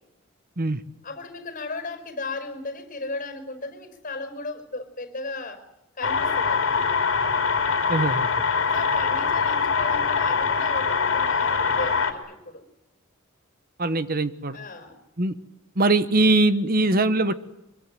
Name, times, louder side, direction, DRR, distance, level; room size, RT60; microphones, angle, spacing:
voice 1, 1.0-5.6 6.0-7.0 8.7-12.6 14.5-15.0, left 3 dB, 40° left, 7 dB, 5.4 m, -35 dB
sound 1, 6.0-12.1, left 5 dB, 65° left, 3.2 m, -23 dB
voice 2, 7.9-8.4 13.8-14.6 15.2-15.3 15.8-17.3, right 2 dB, 45° right, 12 dB, 1.2 m, -22 dB
24.5 x 23.5 x 7.8 m, 0.89 s
head